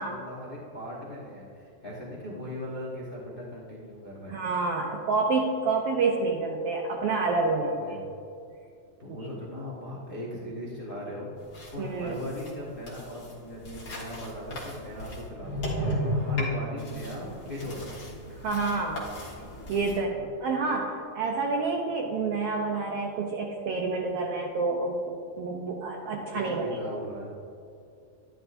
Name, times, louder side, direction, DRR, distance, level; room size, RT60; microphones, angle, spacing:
voice 1, 0.0-4.3 7.6-8.0 9.0-11.3 11.7-18.0 20.1-20.3 26.3-27.3, left 1 dB, 70° left, -5 dB, 0.5 m, -39 dB
voice 2, 4.3-7.8 9.2-9.3 11.8-12.2 18.4-19.0 19.7-26.9, right 3 dB, 80° right, 0 dB, 1.3 m, -28 dB
sound 1, 11.4-20.0, left 1 dB, 40° left, 1.8 m, -35 dB
11.5 x 11.0 x 2.6 m, 2.6 s
omnidirectional pair, 3.5 m